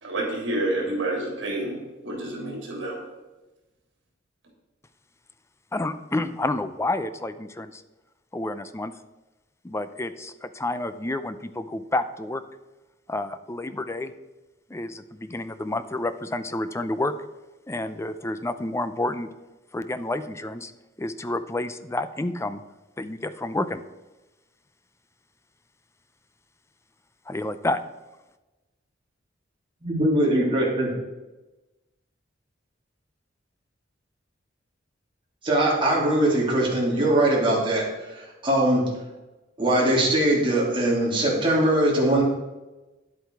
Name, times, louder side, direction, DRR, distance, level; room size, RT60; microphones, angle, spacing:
voice 1, 0.0-3.0, right 1 dB, 70° right, -1 dB, 3.4 m, -29 dB
voice 2, 5.7-7.8 8.3-8.9 9.6-12.4 13.1-14.1 14.7-17.1 17.7-19.3 19.7-20.7 21.0-22.6 23.0-23.8 27.3-27.8, left 2 dB, 15° left, 12 dB, 0.5 m, -29 dB
voice 3, 29.8-30.9 35.4-38.9 39.6-42.2, right 1 dB, 30° right, -4 dB, 3.1 m, -21 dB
10.5 x 8.1 x 4.7 m, 1.1 s
head